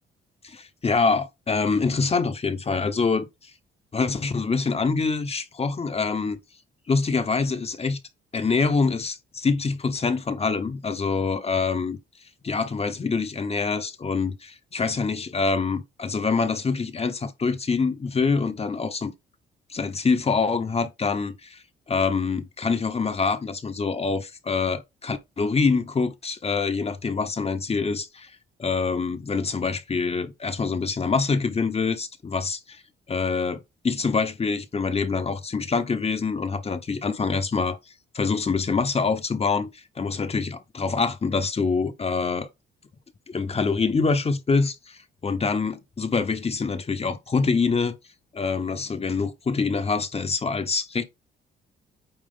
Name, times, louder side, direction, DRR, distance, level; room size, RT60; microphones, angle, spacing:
voice 1, 0.4-3.5 3.9-6.4 6.9-8.0 8.3-12.0 12.4-19.1 19.7-21.6 21.9-28.3 28.6-32.8 33.1-37.8 38.1-42.5 43.3-48.0 48.3-51.0, left 4 dB, 30° left, 1.0 m, -25 dB
8.9 x 3.0 x 3.8 m
cardioid pair, 90°, 20 cm